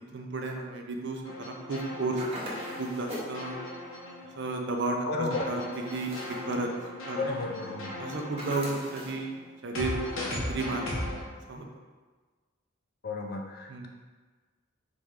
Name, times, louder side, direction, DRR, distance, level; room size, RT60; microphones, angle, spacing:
voice 1, 0.1-2.5 2.8-3.6 4.4-5.6 5.9-6.7 7.1-7.3 8.0-9.3 9.6-10.0 10.3-10.8 11.5-11.7 13.7-13.9, right 2 dB, 55° right, 2 dB, 0.5 m, -33 dB
sound 1, 1.2-4.9 5.3-11.3, left 1 dB, 70° left, 1.0 m, -38 dB
sound 2, 2.2-3.4 5.7-6.5 8.4-9.3, equal, 30° right, 0.9 m, -40 dB
voice 2, 5.1-5.5 7.2-7.9 13.0-13.9, left 3 dB, 45° left, 2 dB, 0.5 m, -32 dB
4.1 x 3.3 x 3.6 m, 1.4 s
head